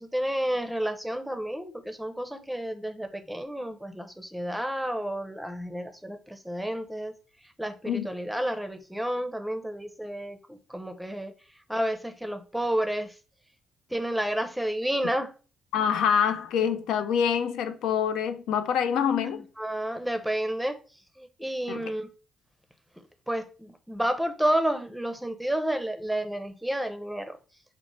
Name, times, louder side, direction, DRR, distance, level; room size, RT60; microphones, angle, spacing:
voice 1, 0.0-7.1 7.6-11.3 11.7-13.1 13.9-15.3 19.3-20.8 21.2-22.1 23.3-27.4, right 1 dB, 5° right, 0.5 m, -30 dB
voice 2, 15.7-19.4 21.7-21.8, left 8 dB, 85° left, 0.3 m, -26 dB
3.9 x 2.1 x 3.0 m
cardioid pair, 90°, 0 cm